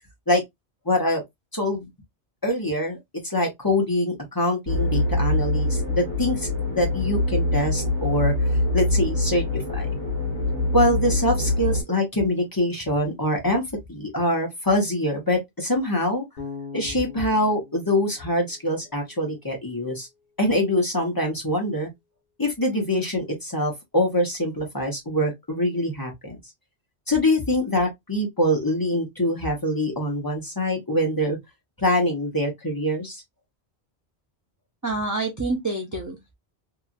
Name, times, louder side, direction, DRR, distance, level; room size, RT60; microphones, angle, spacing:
voice 1, 0.9-1.2 1.5-1.9 2.4-3.0 3.2-8.3 8.7-9.9 10.7-13.6 13.9-16.2 16.7-20.1 20.4-21.9 22.4-26.4 27.1-31.4 31.8-33.2, left 1 dB, 20° left, 0.9 m, -24 dB
sound 1, 4.7-11.8, left 2 dB, 45° right, 1.6 m, -24 dB
Bass guitar, 16.4-19.4, left 5 dB, 50° left, 1.3 m, -41 dB
voice 2, 34.8-36.3, right 2 dB, 25° right, 0.5 m, -27 dB
2.9 x 2.4 x 2.4 m
omnidirectional pair, 1.1 m